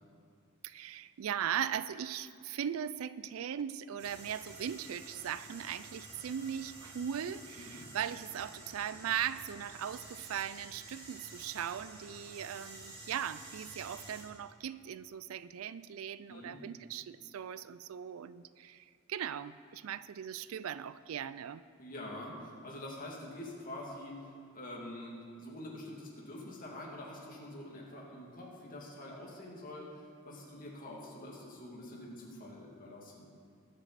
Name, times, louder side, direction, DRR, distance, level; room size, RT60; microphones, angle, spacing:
voice 1, 0.6-21.6, right 9 dB, 85° right, 16 dB, 0.4 m, -39 dB
sound 1, 4.0-14.2, right 2 dB, 60° right, 2.9 m, -50 dB
voice 2, 21.8-33.3, left 1 dB, 40° left, -3 dB, 2.3 m, -46 dB
20.0 x 7.5 x 4.1 m, 2.3 s
head